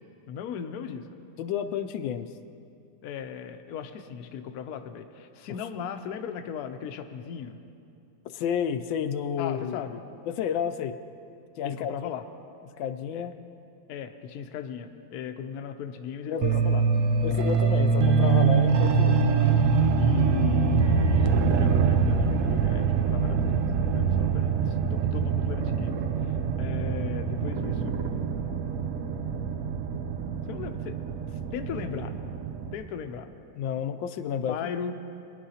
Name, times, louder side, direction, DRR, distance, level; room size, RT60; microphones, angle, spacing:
voice 1, 0.3-1.1 3.0-7.6 9.4-10.0 11.6-12.2 13.1-13.2 13.9-16.8 19.9-23.6 23.9-26.3 26.6-28.0 30.5-31.0 31.3-32.1 32.7-33.3 34.5-34.9, left 8 dB, 70° left, 7 dB, 1.0 m, -37 dB
voice 2, 1.4-2.3 8.3-9.8 10.3-10.9 11.6-11.9 12.8-13.3 16.3-16.5 17.2-19.3 33.6-34.7, left 8 dB, 85° left, 8 dB, 1.3 m, -30 dB
sound 1, 16.4-32.7, right 5 dB, 80° right, 0.7 m, -24 dB
23.0 x 10.5 x 2.8 m, 2.6 s
omnidirectional pair, 2.0 m